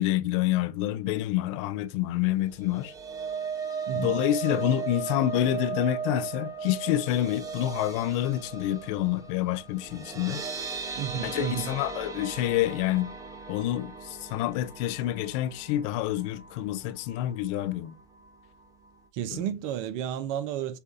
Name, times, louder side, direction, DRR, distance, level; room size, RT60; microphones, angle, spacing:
voice 1, 0.0-2.9 3.9-10.4 11.1-13.1 13.5-18.0 19.3-19.4, left 13 dB, 55° left, 0.5 m, -28 dB
sound 1, 2.5-16.7 17.1-17.3 17.6-17.7, right 6 dB, 20° right, 1.0 m, -37 dB
voice 2, 3.9-4.2 11.0-11.7 19.1-20.8, right 10 dB, 55° right, 0.7 m, -32 dB
6.7 x 2.4 x 2.6 m
hypercardioid pair, 100°, 19 cm